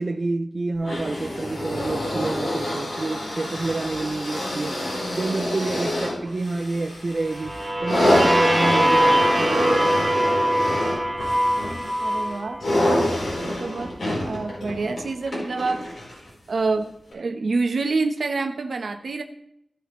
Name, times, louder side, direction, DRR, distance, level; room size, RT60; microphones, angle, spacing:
voice 1, 0.0-4.8 5.1-10.8, right 3 dB, 45° right, 0.6 m, -29 dB
sound 1, 0.8-16.3 17.1-17.2, left 1 dB, 75° left, 4.5 m, -27 dB
sound 2, 7.3-13.1, equal, 15° right, 2.3 m, -22 dB
voice 2, 12.0-12.6 13.5-15.9 16.5-19.2, right 3 dB, 75° right, 1.2 m, -27 dB
16.0 x 6.0 x 3.3 m
wide cardioid pair, 105°, 0 cm